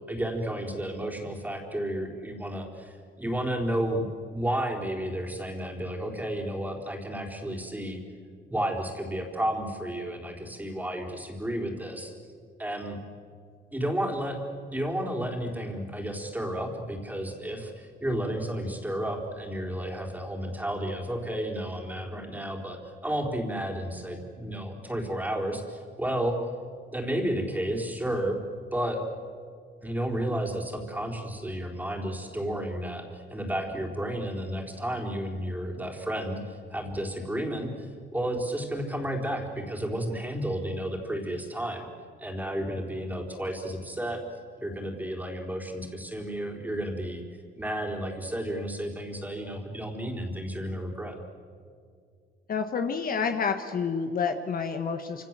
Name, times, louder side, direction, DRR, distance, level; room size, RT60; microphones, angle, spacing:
voice 1, 0.1-4.1 4.3-8.0 8.5-12.1 12.6-13.0 13.7-14.4 14.7-26.4 26.9-28.4 28.7-29.0 29.8-41.9 42.2-44.2 44.6-47.2 47.6-51.2, right 1 dB, 10° right, 2 dB, 4.4 m, -32 dB
voice 2, 52.5-55.3, left 5 dB, 45° left, 6 dB, 1.6 m, -29 dB
28.0 x 27.0 x 7.7 m, 2.2 s
cardioid pair, 110°, 20 cm